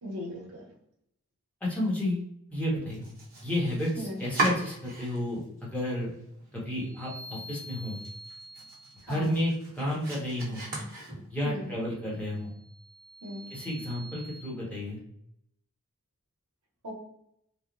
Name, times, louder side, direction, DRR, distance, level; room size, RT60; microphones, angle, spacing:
voice 1, 0.0-0.6 3.9-4.2 9.0-9.4 11.4-11.7 13.2-13.5 16.8-16.9, equal, 85° right, -3 dB, 0.8 m, -38 dB
voice 2, 1.6-3.1 3.4-6.1 6.5-8.0 9.1-10.6 11.3-12.6 13.5-15.0, left 1 dB, 5° left, -6 dB, 0.9 m, -31 dB
Domestic sounds home sounds, 2.9-5.4 5.8-6.5 6.9-7.0 7.4-7.5 7.9-11.6, right 2 dB, 40° right, 1.0 m, -37 dB
sound 1, 6.8-9.3 12.3-14.4, equal, 25° right, 0.6 m, -47 dB
3.1 x 2.0 x 2.5 m, 0.75 s
head